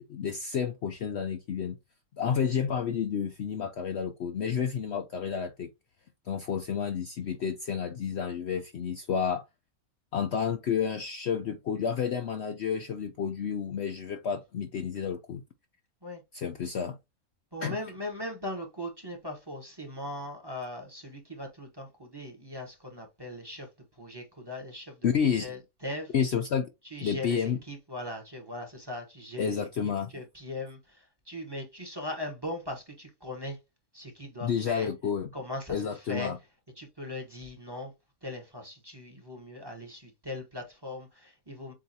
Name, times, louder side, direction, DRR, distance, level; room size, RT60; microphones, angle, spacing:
voice 1, 0.0-1.8 2.2-5.7 6.3-9.4 10.1-15.4 16.3-17.0 17.6-17.8 25.0-25.5 26.1-26.7 27.0-27.6 29.4-30.1 34.4-35.3 35.7-36.4, left 7 dB, 60° left, 0.7 m, -30 dB
voice 2, 17.5-23.7 24.0-25.1 25.4-26.1 26.8-33.6 33.9-34.9 35.3-36.3 36.8-37.9 38.2-41.7, left 1 dB, 20° right, 1.0 m, -39 dB
7.6 x 2.6 x 2.7 m
omnidirectional pair, 1.5 m